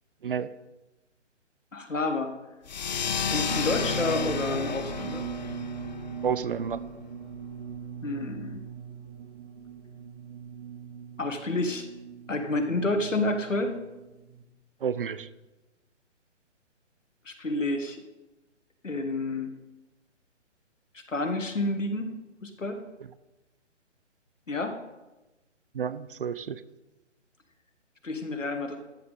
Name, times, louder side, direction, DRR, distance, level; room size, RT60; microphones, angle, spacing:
voice 1, 1.7-2.3 3.3-5.3 8.0-8.6 11.2-11.9 12.3-13.8 17.2-18.0 18.8-19.5 20.9-22.1 22.4-22.8 24.5-24.8 28.0-28.8, left 2 dB, 90° left, 7 dB, 1.5 m, -29 dB
sound 1, 2.7-7.8, left 6 dB, 35° left, 0.5 m, -33 dB
sound 2, 3.5-14.4, right 7 dB, 30° right, 0.8 m, -40 dB
voice 2, 6.2-6.8 14.8-15.3 25.8-26.6, right 7 dB, 50° right, 16 dB, 0.5 m, -30 dB
13.5 x 7.3 x 4.0 m, 1.1 s
figure-of-eight pair, 145°, 37 cm